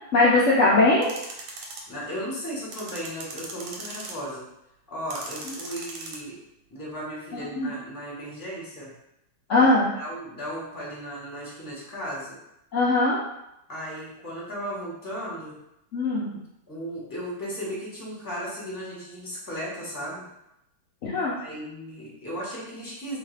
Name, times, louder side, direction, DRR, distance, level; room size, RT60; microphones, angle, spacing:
voice 1, 0.1-1.1 5.5-5.6 7.6-7.7 9.5-9.9 12.7-13.2 15.9-16.3 21.0-21.3, left 2 dB, 80° left, -6 dB, 0.6 m, -20 dB
sound 1, 1.0-1.8 2.7-4.3 5.1-6.2, right 3 dB, 70° right, 1.3 m, -38 dB
voice 2, 1.9-4.4 4.9-6.4 6.7-8.9 9.9-12.4 13.7-15.5 16.7-20.2 21.4-23.2, equal, 15° left, -6 dB, 1.0 m, -35 dB
3.8 x 3.2 x 3.3 m, 0.84 s
omnidirectional pair, 2.2 m